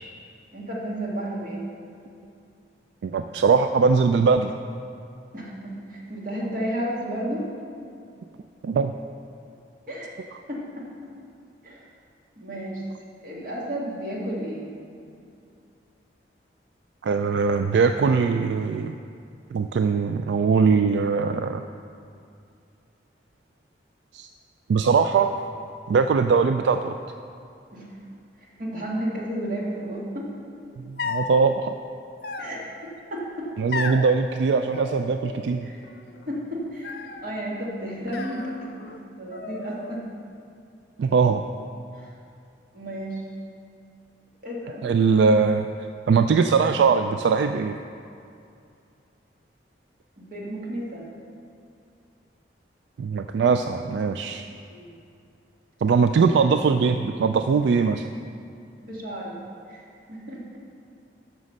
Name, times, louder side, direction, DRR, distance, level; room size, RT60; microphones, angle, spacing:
voice 1, 0.5-1.7 5.3-7.5 9.9-10.1 10.5-10.9 11.6-11.8 12.4-12.8 13.2-14.7 27.7-27.9 28.6-30.3 32.4-33.5 35.6-35.8 36.3-40.0 41.9-42.1 42.7-43.2 44.4-44.9 50.2-51.1 54.7-54.9 58.8-59.4 59.7-59.8 60.1-60.6, right 1 dB, 50° right, -4 dB, 1.8 m, -32 dB
voice 2, 3.0-4.6 8.6-8.9 17.0-18.9 19.5-21.6 24.1-24.3 24.7-25.3 25.9-26.9 30.8-31.7 33.6-35.7 41.0-41.4 44.8-45.7 46.1-47.8 53.0-54.4 55.8-58.1, right 5 dB, 75° right, 7 dB, 0.3 m, -21 dB
sound 1, 31.0-31.4 32.2-32.9 33.7-34.1 34.7-35.6 35.8-36.4 36.8-37.4 38.1-39.0 39.3-40.0, left 4 dB, 60° left, 0.6 m, -34 dB
9.3 x 6.2 x 6.4 m, 2.5 s
head